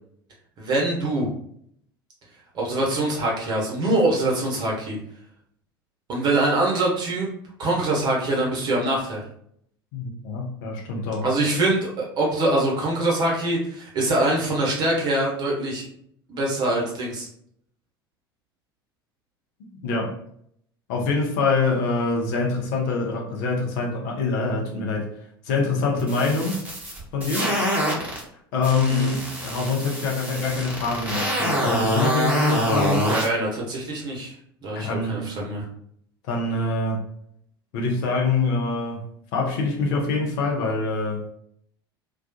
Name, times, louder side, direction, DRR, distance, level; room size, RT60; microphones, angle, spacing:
voice 1, 0.6-1.3 2.5-5.0 6.1-7.3 7.6-9.2 11.2-15.8 16.3-17.3 28.9-29.1 33.1-34.3 34.6-35.6, right 2 dB, 35° right, -3 dB, 0.9 m, -24 dB
voice 2, 9.9-11.3 19.8-20.1 20.9-25.0 25.4-26.6 27.1-27.5 28.5-33.1 34.7-35.3 36.3-37.0 37.7-39.0 39.3-41.2, left 3 dB, 55° left, -1 dB, 0.6 m, -25 dB
sound 1, 26.0-28.2 28.6-33.3, equal, 10° right, 0.9 m, -25 dB
2.3 x 2.2 x 2.6 m, 0.69 s
figure-of-eight pair, 70°, 13 cm